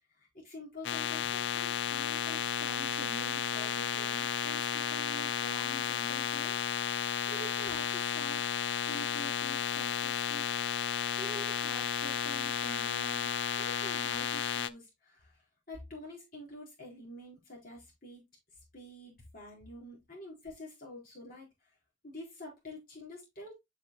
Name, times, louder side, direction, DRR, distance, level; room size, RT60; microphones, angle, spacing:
voice 1, 0.2-6.6 7.3-8.4 8.9-10.4 10.9-15.4 15.7-18.2 18.7-21.5 22.0-23.5, left 1 dB, 45° left, 4.3 m, -47 dB
sound 1, 0.8-14.7, left 8 dB, 70° left, 0.5 m, -33 dB
8.1 x 6.5 x 2.2 m
head